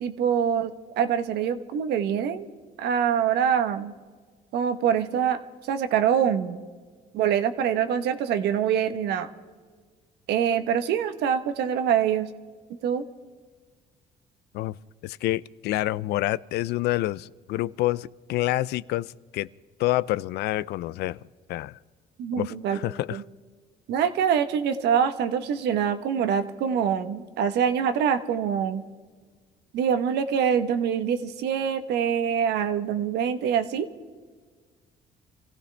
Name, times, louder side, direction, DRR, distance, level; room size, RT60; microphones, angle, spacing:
voice 1, 0.0-2.5 2.8-3.9 4.5-5.4 5.7-6.6 7.1-9.3 10.3-12.3 12.8-13.0 22.2-22.8 23.1-23.2 23.9-28.8 29.7-33.9, right 8 dB, 80° right, 1.0 m, -25 dB
voice 2, 15.0-19.5 19.8-21.2 21.5-21.8 22.3-23.2, left 16 dB, 75° left, 0.4 m, -28 dB
26.5 x 15.5 x 3.3 m
cardioid pair, 110°, 17 cm